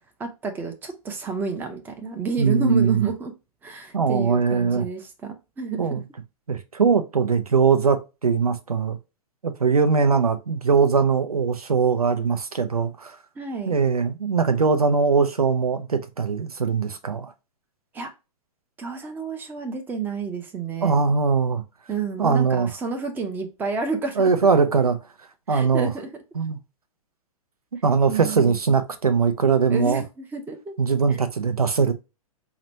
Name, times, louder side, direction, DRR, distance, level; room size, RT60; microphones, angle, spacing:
voice 1, 0.2-3.3 3.6-5.9 13.4-13.8 17.9-18.1 18.8-21.0 21.9-24.3 25.5-26.1 28.1-28.6 29.7-30.7 31.1-31.2, right 4 dB, 10° right, 0.6 m, -30 dB
voice 2, 2.4-3.1 3.9-4.9 5.8-6.0 6.5-9.0 9.4-13.2 13.7-17.3 20.8-21.6 22.2-22.7 24.2-25.0 25.5-25.9 26.4-26.6 27.8-30.0 30.8-31.9, right 5 dB, 75° right, 0.6 m, -21 dB
4.9 x 2.2 x 2.7 m
figure-of-eight pair, 110°, 19 cm